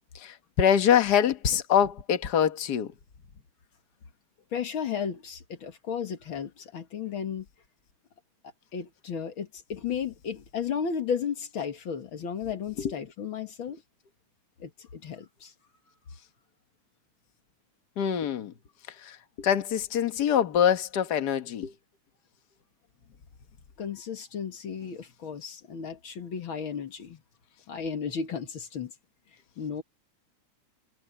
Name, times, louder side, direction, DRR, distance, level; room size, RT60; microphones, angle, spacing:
voice 1, 0.1-2.9 12.8-12.9 18.0-18.5 19.0-21.7, left 9 dB, 65° left, 1.0 m, -24 dB
voice 2, 4.5-7.5 8.7-13.8 14.6-15.5 23.8-27.2 27.7-28.9 29.6-29.8, left 7 dB, 50° left, 1.9 m, -34 dB
omnidirectional pair, 3.7 m